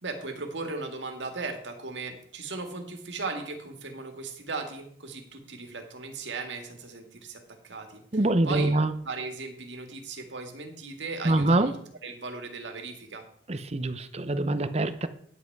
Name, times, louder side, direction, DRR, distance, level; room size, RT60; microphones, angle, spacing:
voice 1, 0.0-8.0 8.5-8.7 9.0-11.7 12.0-13.3, right 3 dB, 85° right, 5 dB, 1.8 m, -37 dB
voice 2, 8.1-8.9 11.2-11.7 13.5-15.1, right 2 dB, 35° right, 12 dB, 0.7 m, -24 dB
9.9 x 8.0 x 4.6 m, 0.63 s
head